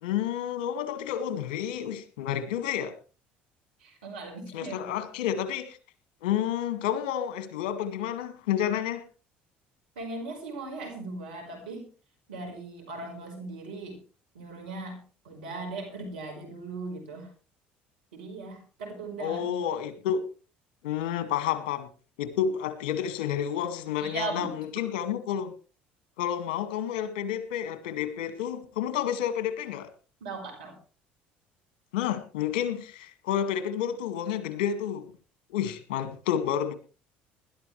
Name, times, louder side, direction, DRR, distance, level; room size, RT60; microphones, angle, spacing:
voice 1, 0.0-3.0 4.5-5.8 6.2-9.0 19.2-20.2 20.8-21.9 22.2-25.5 26.2-29.9 31.9-35.1 35.5-36.7, left 9 dB, 80° left, 2.0 m, -30 dB
voice 2, 3.8-4.9 9.9-11.9 12.3-14.0 14.3-17.3 18.1-19.6 24.0-24.7 30.2-30.8, right 3 dB, 85° right, 4.9 m, -38 dB
20.5 x 12.5 x 3.3 m
hypercardioid pair, 65°, 5 cm